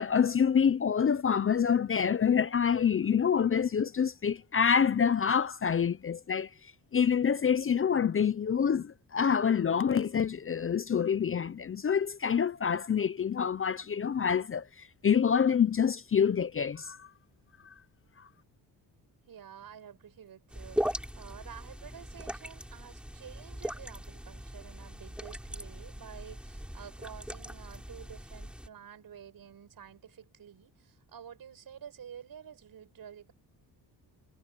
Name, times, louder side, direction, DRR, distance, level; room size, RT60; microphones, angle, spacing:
voice 1, 0.0-6.5 6.9-17.1, left 7 dB, 35° left, 0.6 m, -27 dB
voice 2, 19.3-33.3, right 8 dB, 60° right, 6.7 m, -50 dB
sound 1, 20.5-28.7, equal, ahead, 7.4 m, -39 dB
cardioid pair, 105°, 40 cm